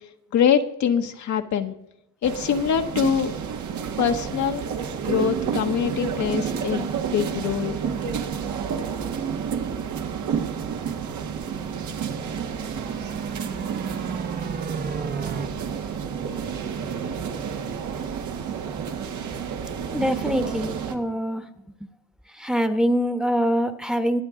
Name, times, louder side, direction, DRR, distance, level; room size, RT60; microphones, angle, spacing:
voice 1, 0.3-1.7 2.2-3.3 4.0-4.6 5.0-7.8, left 8 dB, 70° left, 6 dB, 1.2 m, -24 dB
sound 1, 2.2-21.0, right 7 dB, 70° right, 1.5 m, -30 dB
sound 2, 12.2-15.5, right 5 dB, 30° right, 0.9 m, -33 dB
voice 2, 19.9-21.5 21.8-21.9 22.3-24.2, equal, ahead, 8 dB, 1.1 m, -24 dB
22.0 x 8.1 x 3.8 m, 0.81 s
cardioid pair, 90°, 30 cm